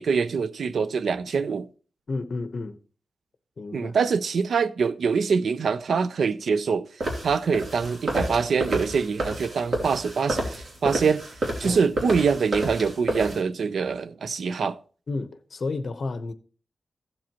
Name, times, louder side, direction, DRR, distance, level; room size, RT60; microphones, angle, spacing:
voice 1, 0.0-1.7 3.7-6.9 7.2-11.2 11.6-14.8, right 5 dB, 75° right, 0.6 m, -24 dB
voice 2, 2.1-2.8 3.6-4.0 11.6-11.8 15.1-16.3, left 3 dB, 55° left, 0.9 m, -31 dB
sound 1, 7.0-13.4, right 1 dB, 55° right, 3.0 m, -30 dB
15.5 x 7.5 x 2.9 m
wide cardioid pair, 115°, 0 cm